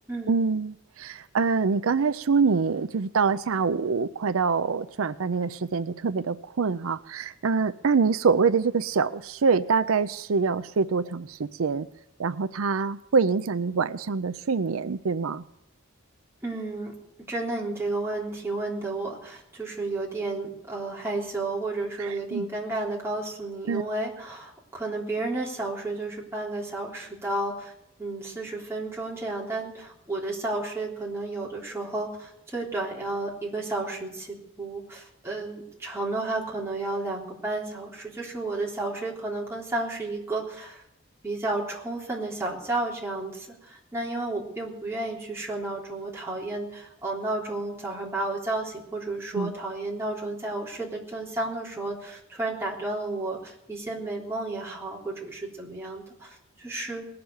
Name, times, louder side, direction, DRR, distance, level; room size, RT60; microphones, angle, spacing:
voice 1, 0.3-11.9 12.2-15.4 22.0-22.5 23.7-23.8 49.3-49.5, right 5 dB, 85° right, 14 dB, 0.5 m, -25 dB
voice 2, 16.4-16.9 17.3-27.7 28.0-40.8 41.2-57.0, right 2 dB, 10° right, -4 dB, 3.5 m, -32 dB
20.0 x 6.8 x 9.4 m, 0.77 s
head